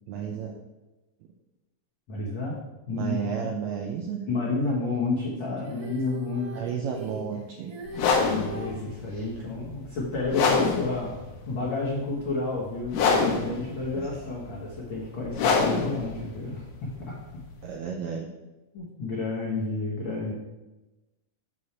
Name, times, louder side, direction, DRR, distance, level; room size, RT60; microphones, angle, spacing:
voice 1, 0.1-0.5 2.9-4.2 6.5-7.7 9.1-9.2 13.9-14.3 17.6-18.3, right 7 dB, 80° right, 1 dB, 1.6 m, -33 dB
voice 2, 2.1-2.6 2.9-3.5 4.3-6.6 8.2-11.2 11.5-16.6 17.1-17.2 18.7-20.3, left 3 dB, 55° left, -5 dB, 1.4 m, -30 dB
Female singing, 5.6-8.8 10.8-10.9, right 3 dB, 45° right, 1.7 m, -40 dB
sound 1, 7.9-17.8, left 4 dB, 75° left, 2.4 m, -27 dB
7.1 x 6.3 x 4.2 m, 1.1 s
omnidirectional pair, 3.8 m